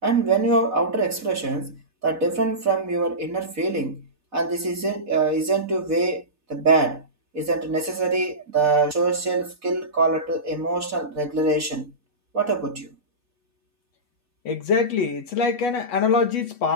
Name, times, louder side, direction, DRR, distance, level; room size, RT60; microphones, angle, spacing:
voice 1, 0.0-6.2 6.5-7.1 7.3-11.9 12.3-12.9, right 3 dB, 20° right, 4.3 m, -23 dB
voice 2, 14.4-16.7, left 5 dB, 50° left, 2.9 m, -23 dB
omnidirectional pair, 4.1 m